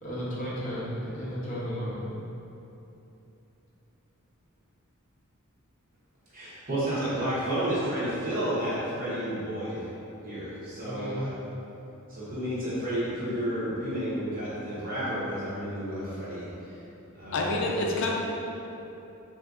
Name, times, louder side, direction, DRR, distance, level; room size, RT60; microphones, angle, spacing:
voice 1, 0.0-2.1 10.8-11.3, equal, 35° left, -8 dB, 0.8 m, -34 dB
voice 2, 6.3-9.8 10.2-11.3 12.1-16.5 17.1-17.7, right 1 dB, 40° right, -10 dB, 0.9 m, -31 dB
voice 3, 17.3-18.1, left 2 dB, 60° left, -1 dB, 0.4 m, -27 dB
3.4 x 2.7 x 2.4 m, 3.0 s
head